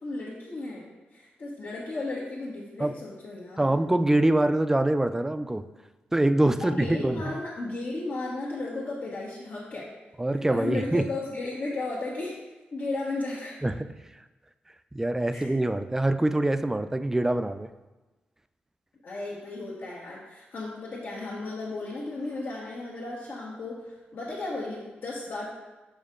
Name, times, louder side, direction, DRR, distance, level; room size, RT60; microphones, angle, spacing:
voice 1, 0.0-3.7 6.6-9.9 10.3-12.4 12.7-13.6 15.3-15.5 19.0-25.5, left 2 dB, 65° left, -6 dB, 1.3 m, -35 dB
voice 2, 3.6-5.6 6.1-7.3 10.2-11.0 13.6-13.7 14.9-17.7, right 1 dB, 10° right, 11 dB, 0.3 m, -24 dB
6.6 x 5.3 x 3.7 m, 1.1 s
cardioid pair, 95°, 4 cm